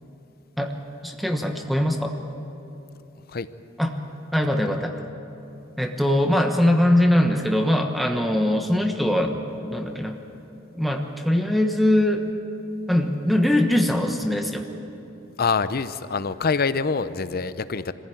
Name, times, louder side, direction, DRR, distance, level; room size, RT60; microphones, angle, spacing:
voice 1, 1.0-2.2 3.8-3.9 4.3-5.0 5.8-10.2 10.7-12.3 12.9-14.6, left 1 dB, ahead, 2 dB, 1.2 m, -22 dB
voice 2, 15.4-17.9, left 5 dB, 50° left, 13 dB, 0.7 m, -25 dB
26.0 x 15.5 x 9.2 m, 2.9 s
head